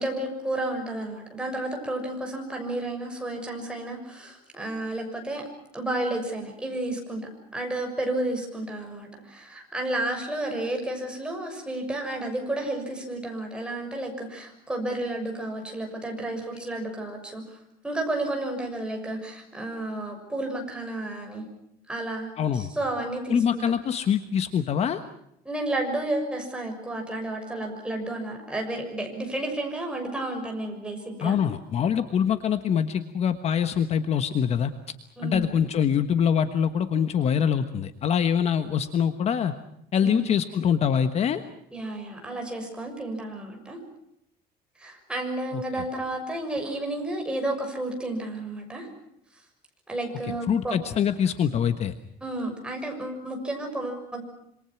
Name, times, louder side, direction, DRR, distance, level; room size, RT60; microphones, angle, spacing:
voice 1, 0.0-5.4 5.7-7.2 7.5-17.6 17.8-21.4 21.9-23.6 25.4-31.4 35.2-35.5 40.0-40.3 41.7-43.8 44.8-48.9 49.9-50.8 52.2-54.2, right 1 dB, 5° right, 2 dB, 6.5 m, -31 dB
voice 2, 22.4-22.7 23.3-25.0 31.2-34.7 35.2-39.5 39.9-41.4 45.5-45.8 50.5-51.9, left 8 dB, 40° left, 10 dB, 1.3 m, -24 dB
27.0 x 26.0 x 6.0 m, 0.77 s
cardioid pair, 150°, 17 cm